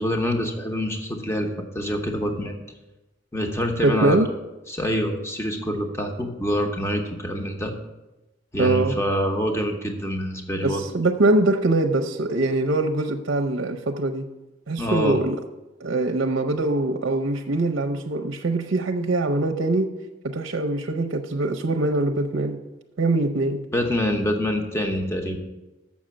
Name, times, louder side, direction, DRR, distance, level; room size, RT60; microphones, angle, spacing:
voice 1, 0.0-2.5 3.3-4.3 4.7-7.7 8.5-10.8 14.8-15.2 23.7-25.4, equal, 15° left, 3 dB, 1.0 m, -26 dB
voice 2, 3.8-4.3 8.6-9.0 10.6-14.3 14.7-15.4 15.8-19.9 20.2-22.6 23.0-23.7, right 2 dB, 70° right, 4 dB, 0.6 m, -23 dB
7.2 x 6.2 x 7.5 m, 1.0 s
head